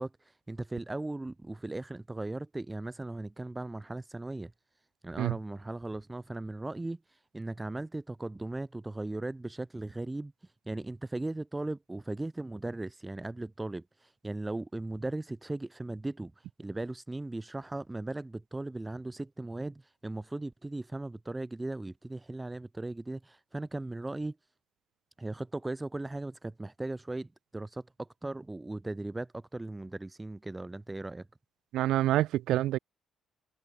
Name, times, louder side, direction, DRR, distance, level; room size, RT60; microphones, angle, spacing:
voice 1, 0.0-4.5 5.0-10.3 10.7-24.4 25.2-31.3, right 2 dB, 10° right, 3.7 m, -38 dB
voice 2, 31.7-32.8, right 14 dB, 85° right, 0.6 m, -27 dB
cardioid pair, 145°, 0 cm